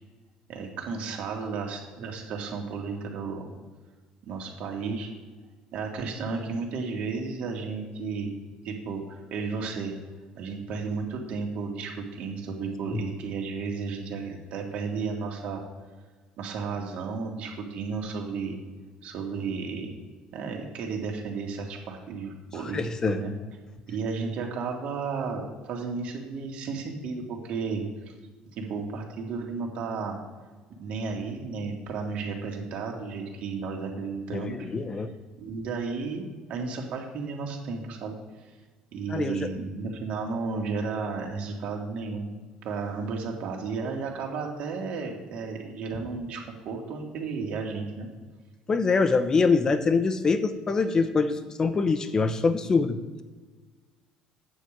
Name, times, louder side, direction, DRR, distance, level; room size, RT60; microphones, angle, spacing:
voice 1, 0.5-3.5 4.3-5.1 5.7-8.3 8.6-9.9 10.3-15.6 16.4-18.6 19.0-19.9 20.3-22.8 23.1-23.3 23.9-28.1 28.5-30.2 30.8-34.7 35.4-38.2 38.9-42.4 42.6-48.1, right 4 dB, 60° right, 1 dB, 2.1 m, -33 dB
voice 2, 22.7-23.2 34.3-35.1 39.1-39.5 48.7-53.2, left 4 dB, 25° left, 10 dB, 0.8 m, -24 dB
9.5 x 5.0 x 7.3 m, 1.4 s
cardioid pair, 130°, 3 cm